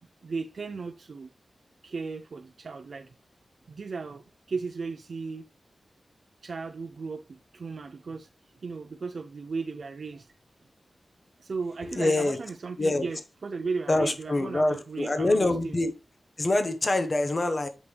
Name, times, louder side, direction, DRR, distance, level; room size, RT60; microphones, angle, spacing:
voice 1, 0.2-1.3 1.8-3.1 3.7-5.4 6.4-8.3 8.6-10.3 11.4-15.7, right 4 dB, 65° right, 0.5 m, -36 dB
voice 2, 11.8-12.4 12.8-13.1 13.9-15.9 16.4-17.7, left 2 dB, 35° left, 1.0 m, -25 dB
8.3 x 5.2 x 3.3 m
wide cardioid pair, 110°, 0 cm